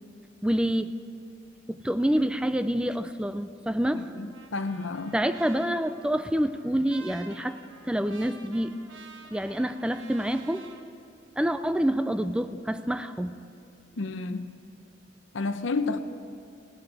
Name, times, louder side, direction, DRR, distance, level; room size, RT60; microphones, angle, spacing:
voice 1, 0.4-1.0 1.7-4.1 5.1-7.6 7.9-8.7 9.3-10.7 11.4-13.3, equal, 5° right, 0.3 m, -27 dB
voice 2, 4.0-5.1 14.0-14.5 15.3-16.0, left 3 dB, 75° left, 0.7 m, -31 dB
Trumpet, 4.1-10.8, right 3 dB, 85° right, 1.4 m, -50 dB
16.0 x 7.8 x 8.9 m
head